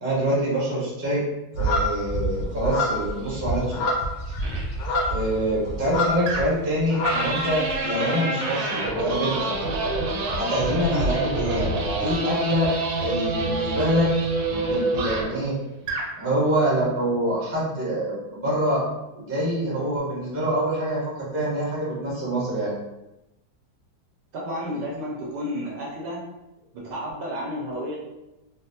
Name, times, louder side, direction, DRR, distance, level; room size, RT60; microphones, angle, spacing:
voice 1, 0.0-1.2 1.6-3.8 5.1-9.5 10.4-12.7 13.0-14.1 14.5-15.5 16.2-18.8 19.1-22.7, equal, 20° right, -7 dB, 0.4 m, -25 dB
sound 1, 1.6-6.5 6.8-7.8, left 1 dB, 85° left, 1.4 m, -26 dB
sound 2, 4.4-4.6 6.3-6.7 7.0-15.4 15.8-16.1, right 2 dB, 90° right, 1.5 m, -27 dB
voice 2, 24.3-26.2 26.7-28.0, equal, 70° right, -3 dB, 1.1 m, -31 dB
4.0 x 2.0 x 2.7 m, 0.95 s
omnidirectional pair, 2.2 m